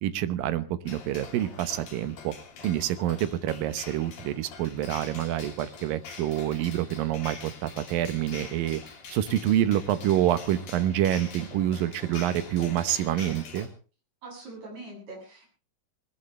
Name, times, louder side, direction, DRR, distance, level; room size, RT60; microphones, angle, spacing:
voice 1, 0.0-2.3 2.6-8.8 9.1-13.7, right 12 dB, 70° right, 12 dB, 2.4 m, -27 dB
sound 1, 0.9-13.7, left 5 dB, 60° left, 4.9 m, -45 dB
voice 2, 14.2-15.5, right 2 dB, 40° right, -2 dB, 9.3 m, -42 dB
20.5 x 19.5 x 3.3 m, 0.36 s
omnidirectional pair, 4.9 m